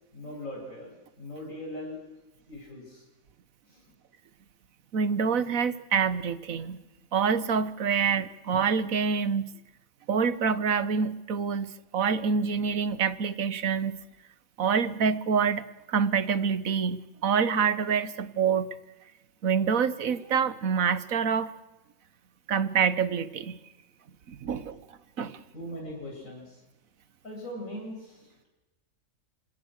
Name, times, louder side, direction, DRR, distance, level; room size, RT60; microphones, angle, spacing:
voice 1, 0.1-2.0 2.5-3.0 3.7-3.8 25.5-26.6 27.2-28.5, left 1 dB, 75° left, -1 dB, 8.4 m, -40 dB
voice 2, 4.9-6.8 7.1-9.4 10.1-14.0 14.6-18.7 19.4-21.5 22.5-23.6 24.3-24.8 25.2-25.4, right 6 dB, 90° right, 14 dB, 1.5 m, -26 dB
26.5 x 22.0 x 6.5 m, 1.1 s
omnidirectional pair, 1.4 m